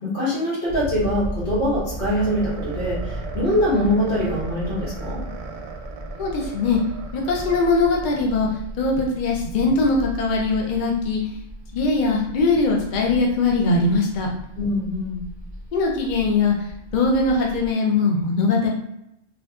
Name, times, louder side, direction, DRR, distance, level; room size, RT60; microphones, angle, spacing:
voice 1, 0.0-5.2 14.6-15.2, left 1 dB, 85° left, -9 dB, 1.8 m, -23 dB
sound 1, 0.7-17.7, right 1 dB, 20° left, 1.0 m, -35 dB
sound 2, 2.2-8.6, right 5 dB, 85° right, 0.9 m, -39 dB
voice 2, 6.2-6.8 7.1-8.5 8.8-11.2 11.7-14.3 15.7-16.5 16.9-18.7, left 3 dB, 55° left, -1 dB, 0.6 m, -21 dB
3.5 x 2.6 x 2.4 m, 0.82 s
omnidirectional pair, 1.1 m